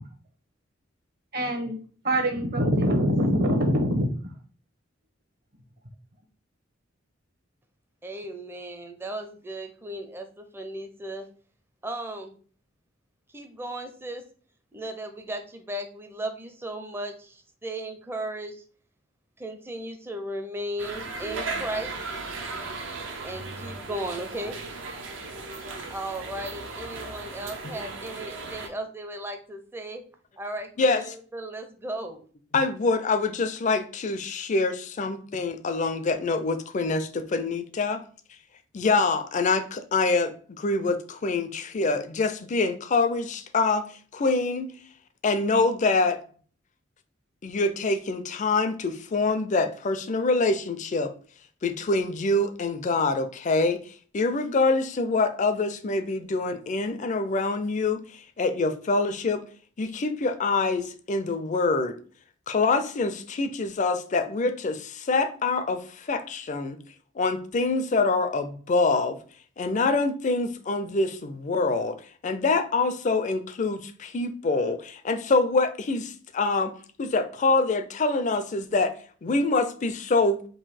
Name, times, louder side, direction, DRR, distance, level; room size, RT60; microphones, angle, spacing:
voice 1, 1.3-1.8 2.0-4.1, equal, 50° right, 0.9 m, -23 dB
voice 2, 8.0-11.3 11.8-12.4 13.3-14.3 14.7-18.6 19.4-22.0 23.2-24.6 25.9-30.0 30.4-32.2, right 1 dB, 10° right, 0.5 m, -36 dB
sound 1, 20.8-28.7, right 3 dB, 70° right, 0.7 m, -36 dB
voice 3, 32.5-38.0 38.7-43.9 44.1-44.8 45.2-46.2 47.4-51.1 51.6-53.8 54.1-58.0 58.4-59.4 59.8-62.0 62.5-66.8 67.2-69.2 69.6-72.0 72.2-76.7 77.0-78.9 79.2-80.4, left 3 dB, 40° left, 0.4 m, -25 dB
3.8 x 2.7 x 4.1 m
head